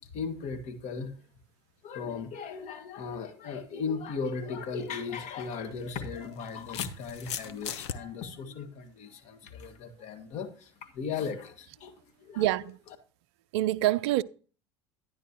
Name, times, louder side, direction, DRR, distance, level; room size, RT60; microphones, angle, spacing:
voice 1, 0.0-1.1 1.8-12.4, left 5 dB, 55° left, 1.9 m, -37 dB
sound 1, 4.8-5.0 6.0-8.0, left 9 dB, 75° left, 0.9 m, -37 dB
voice 2, 12.4-12.8 13.5-14.2, right 15 dB, 70° right, 0.5 m, -26 dB
11.5 x 10.0 x 3.0 m
hypercardioid pair, 70°, 15 cm